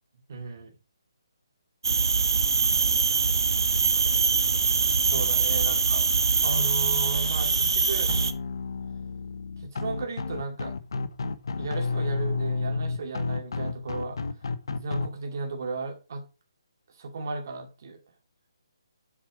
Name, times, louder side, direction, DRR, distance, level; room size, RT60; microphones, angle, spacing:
voice 1, 0.3-0.7 5.0-6.0 6.4-8.1 9.6-10.7 11.6-14.2 14.7-16.2 17.0-18.0, right 3 dB, 35° right, 2 dB, 2.4 m, -35 dB
sound 1, 1.8-8.3, right 5 dB, 55° right, 1.3 m, -23 dB
sound 2, 8.1-15.1, left 4 dB, 55° left, 0.9 m, -31 dB
7.8 x 6.4 x 4.9 m, 0.30 s
hypercardioid pair, 175°, 3 cm